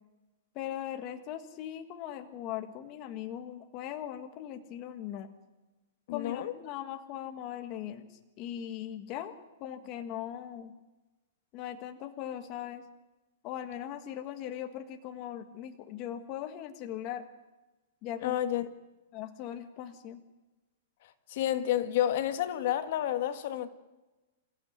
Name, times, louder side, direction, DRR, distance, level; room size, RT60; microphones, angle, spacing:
voice 1, 0.6-5.3 6.1-10.7 11.5-12.8 13.4-17.3 18.0-18.4 19.1-20.2, left 10 dB, 30° left, 7 dB, 1.6 m, -39 dB
voice 2, 6.1-6.5 18.2-18.7 21.3-23.7, left 11 dB, 45° left, 10 dB, 1.6 m, -30 dB
28.0 x 15.0 x 9.6 m, 1.1 s
hypercardioid pair, 170°, 0 cm